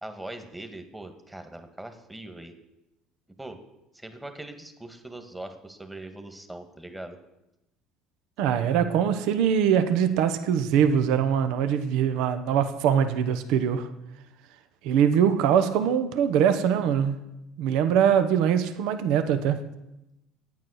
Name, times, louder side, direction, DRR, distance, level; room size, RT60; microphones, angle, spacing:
voice 1, 0.0-2.5 3.4-3.6 3.9-7.2, right 1 dB, 10° right, 7 dB, 1.5 m, -41 dB
voice 2, 8.4-13.9 14.8-17.2 17.6-19.6, right 8 dB, 75° right, 10 dB, 0.8 m, -22 dB
9.5 x 9.0 x 6.4 m, 0.92 s
supercardioid pair, 90°, 0 cm